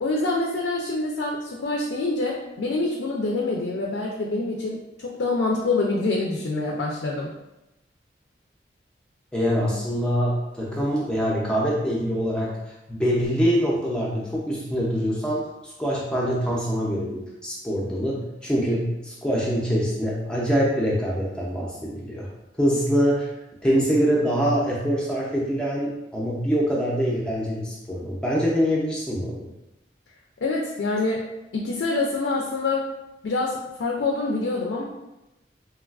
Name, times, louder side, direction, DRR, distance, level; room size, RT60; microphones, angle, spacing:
voice 1, 0.0-7.3 30.4-31.2 31.5-32.8 33.2-34.8, left 3 dB, 80° left, -1 dB, 0.4 m, -26 dB
voice 2, 9.3-12.5 12.9-22.3 22.6-23.3 23.6-29.5, equal, 5° left, -5 dB, 0.4 m, -24 dB
3.2 x 2.3 x 2.3 m, 0.95 s
head